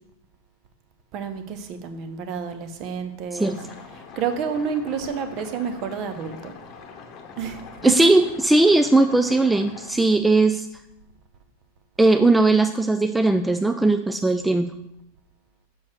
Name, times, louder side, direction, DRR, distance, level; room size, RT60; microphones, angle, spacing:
voice 1, 1.1-3.6 4.2-6.5 7.4-7.9, right 6 dB, 40° right, 9 dB, 0.8 m, -29 dB
sound 1, 3.4-9.9, left 5 dB, 35° left, 1.1 m, -43 dB
voice 2, 7.8-10.7 12.0-14.7, right 2 dB, 5° right, 8 dB, 0.3 m, -18 dB
7.2 x 6.2 x 4.5 m, 0.86 s
figure-of-eight pair, 90°, 0 cm